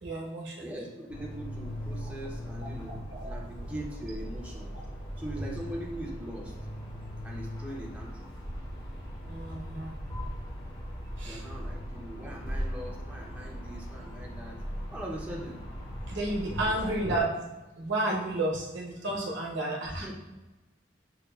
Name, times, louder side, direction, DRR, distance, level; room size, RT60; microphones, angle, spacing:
voice 1, 0.0-0.7 3.1-3.3 9.3-10.3 11.2-11.4 16.1-17.3 17.8-20.1, right 1 dB, 65° right, -2 dB, 0.9 m, -32 dB
voice 2, 0.6-4.8 5.2-6.5 7.2-8.3 11.2-14.6 14.9-15.6 16.6-17.0 19.8-20.1, right 1 dB, 5° right, -3 dB, 0.5 m, -41 dB
sound 1, 1.1-17.2, equal, 55° left, 1.2 m, -39 dB
6.4 x 2.3 x 2.2 m, 1.1 s
head